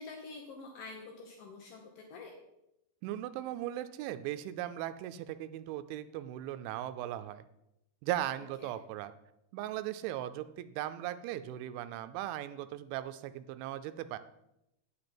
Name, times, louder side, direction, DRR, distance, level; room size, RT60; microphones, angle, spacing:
voice 1, 0.0-2.3 8.6-8.7, left 3 dB, 80° left, 2 dB, 1.9 m, -47 dB
voice 2, 3.0-7.4 8.0-9.1 9.5-14.2, right 13 dB, 85° right, 11 dB, 2.9 m, -38 dB
9.6 x 9.2 x 4.4 m, 0.85 s
omnidirectional pair, 5.4 m